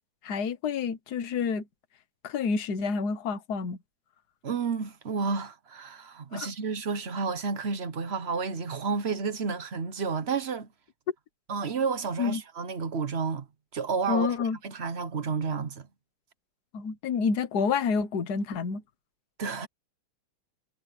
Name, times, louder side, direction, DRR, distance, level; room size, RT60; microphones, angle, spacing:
voice 1, 0.2-1.6 2.2-3.8 6.3-6.5 12.2-12.4 14.1-14.6 16.7-18.8, left 5 dB, 50° left, 1.7 m, -28 dB
voice 2, 4.4-10.7 11.5-13.5 13.7-14.3 14.6-15.9 19.4-19.7, right 5 dB, 45° right, 0.9 m, -31 dB
omnidirectional pair, 2.3 m